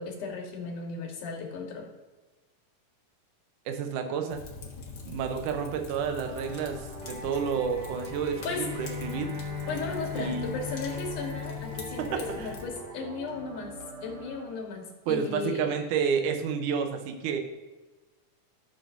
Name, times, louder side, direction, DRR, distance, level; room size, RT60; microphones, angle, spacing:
voice 1, 0.0-1.9 8.4-8.7 9.7-15.7, left 4 dB, 80° left, 1 dB, 2.9 m, -36 dB
voice 2, 3.7-4.4 5.0-9.3 10.2-10.6 12.1-12.5 15.1-17.4, right 6 dB, 80° right, 5 dB, 2.4 m, -30 dB
Fire, 4.3-12.6, left 4 dB, 55° left, 1.2 m, -44 dB
sound 1, 6.0-14.9, right 2 dB, 55° right, 2.5 m, -44 dB
Bowed string instrument, 8.5-13.2, left 6 dB, 25° left, 0.7 m, -39 dB
14.5 x 6.9 x 2.7 m, 1.2 s
omnidirectional pair, 3.6 m